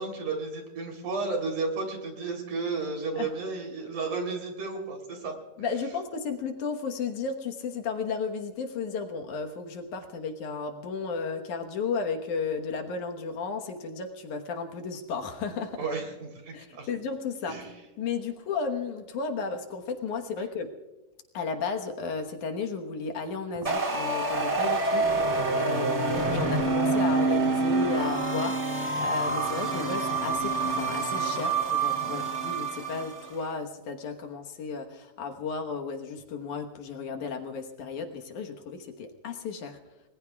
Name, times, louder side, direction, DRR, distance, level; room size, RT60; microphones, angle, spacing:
voice 1, 0.0-5.3 15.8-16.9 17.5-17.7 32.0-32.2, right 3 dB, 65° right, 3 dB, 4.8 m, -33 dB
voice 2, 5.6-15.8 16.5-17.6 18.0-20.7 21.3-39.8, left 5 dB, 70° left, 4 dB, 2.6 m, -34 dB
sound 1, 23.6-33.3, right 3 dB, 30° right, 1.5 m, -27 dB
30.0 x 20.5 x 2.4 m, 1.1 s
omnidirectional pair, 3.9 m